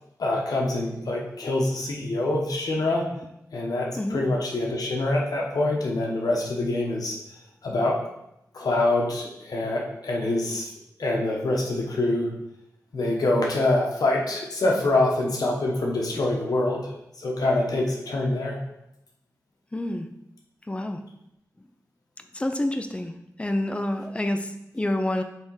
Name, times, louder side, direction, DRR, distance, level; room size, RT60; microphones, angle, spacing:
voice 1, 0.2-3.1 3.5-7.2 7.6-8.0 8.5-10.7 11.0-12.3 12.9-18.6, left 2 dB, 85° left, -1 dB, 1.2 m, -25 dB
voice 2, 19.7-20.1 20.7-21.0 22.3-23.1 23.4-25.2, left 1 dB, 20° left, 7 dB, 0.6 m, -28 dB
6.7 x 3.5 x 4.8 m, 0.84 s
wide cardioid pair, 90°, 6 cm